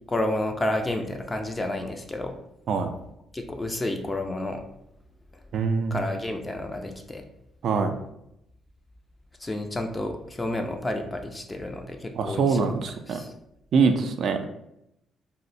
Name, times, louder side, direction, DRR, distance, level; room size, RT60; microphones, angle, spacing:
voice 1, 0.1-2.4 3.3-4.6 5.3-5.4 5.9-7.2 9.4-12.6 13.1-13.3, left 1 dB, 20° left, 4 dB, 0.4 m, -30 dB
voice 2, 5.5-6.0 7.6-8.0 12.1-13.2 13.7-14.4, right 5 dB, 65° right, 7 dB, 0.4 m, -24 dB
2.6 x 2.1 x 3.9 m, 0.82 s
cardioid pair, 90°, 0 cm